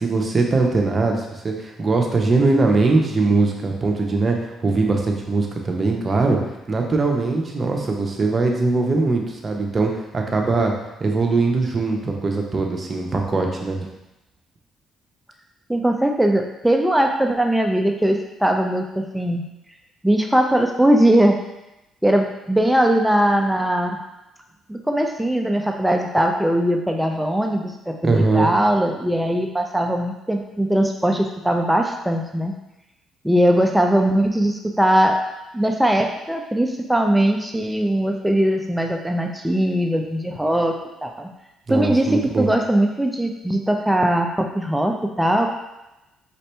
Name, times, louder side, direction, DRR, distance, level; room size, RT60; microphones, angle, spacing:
voice 1, 0.0-6.4 6.7-10.7 11.0-13.8 28.0-28.5 41.7-42.5, right 3 dB, 35° right, 1 dB, 0.9 m, -21 dB
voice 2, 15.7-19.4 20.0-21.4 22.0-24.0 24.7-32.5 33.2-35.2 35.5-40.7 41.0-41.3 41.7-45.5, right 1 dB, 5° right, 3 dB, 0.5 m, -20 dB
5.3 x 2.7 x 3.3 m, 0.95 s
supercardioid pair, 60°, 0 cm